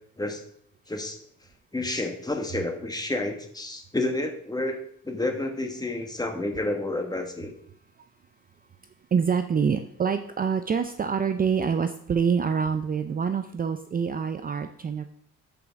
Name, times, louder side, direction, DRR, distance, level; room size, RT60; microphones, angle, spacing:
voice 1, 0.9-1.2 1.7-4.8 5.0-7.5, left 2 dB, 15° left, 4 dB, 1.5 m, -30 dB
voice 2, 9.1-15.1, right 6 dB, 30° right, 9 dB, 0.5 m, -26 dB
12.5 x 5.2 x 3.6 m, 0.64 s
cardioid pair, 90°, 30 cm